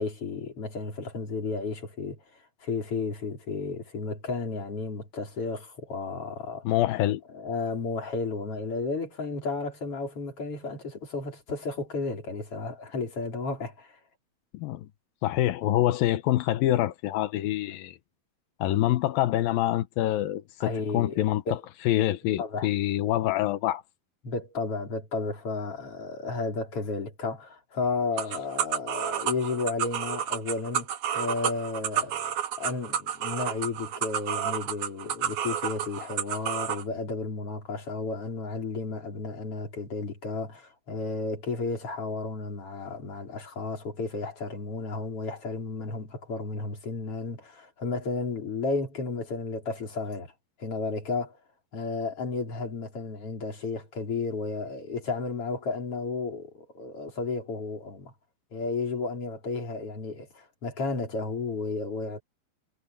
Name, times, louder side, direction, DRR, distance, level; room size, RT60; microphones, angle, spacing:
voice 1, 0.0-2.2 2.6-6.6 7.3-14.0 20.6-21.2 21.5-21.6 22.4-22.7 24.2-30.9 31.2-50.3 50.6-51.4 51.7-58.1 58.5-62.2, left 3 dB, 40° left, 5.0 m, -33 dB
voice 2, 6.6-7.2 14.5-14.9 15.2-18.0 18.6-21.6 21.8-23.8, left 14 dB, 90° left, 2.8 m, -26 dB
sound 1, 28.2-36.8, right 9 dB, 70° right, 2.7 m, -30 dB
omnidirectional pair, 4.0 m